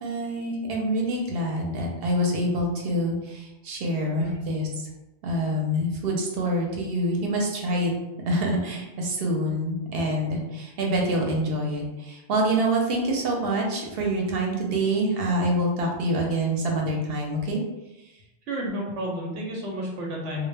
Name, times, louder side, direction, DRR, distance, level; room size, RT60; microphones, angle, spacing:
voice 1, 0.0-4.7 5.2-7.9 8.3-17.6, right 1 dB, 65° right, 0 dB, 0.7 m, -26 dB
voice 2, 18.5-20.5, equal, 90° right, -1 dB, 0.9 m, -31 dB
2.1 x 2.0 x 3.2 m, 0.98 s
omnidirectional pair, 1.2 m